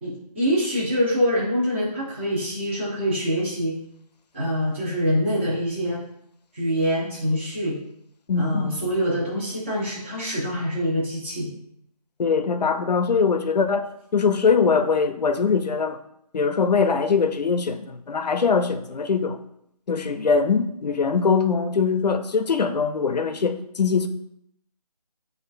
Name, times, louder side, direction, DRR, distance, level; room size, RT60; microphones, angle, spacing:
voice 1, 0.0-3.7 4.3-6.0 6.5-7.8 8.3-11.5, equal, 20° right, -7 dB, 0.9 m, -25 dB
voice 2, 8.3-8.8 12.2-13.9 14.1-16.0 16.3-19.4 19.9-24.1, left 5 dB, 90° left, 9 dB, 0.5 m, -22 dB
6.3 x 2.6 x 2.5 m, 0.74 s
figure-of-eight pair, 170°, 20 cm